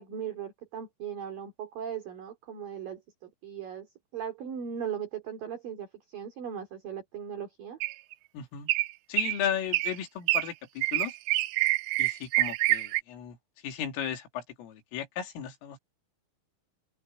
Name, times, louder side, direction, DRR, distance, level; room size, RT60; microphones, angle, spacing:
voice 1, 0.0-3.9 4.1-7.8, right 8 dB, 50° right, 4.2 m, -38 dB
sound 1, 7.8-8.1 8.7-8.9 9.2-9.4 9.7-10.0 10.3-10.5 10.8-13.0, right 20 dB, 85° right, 3.3 m, -26 dB
voice 2, 8.3-8.7 9.1-11.1 12.0-13.4 13.6-15.8, left 9 dB, 85° left, 5.1 m, -35 dB
open air
omnidirectional pair, 5.7 m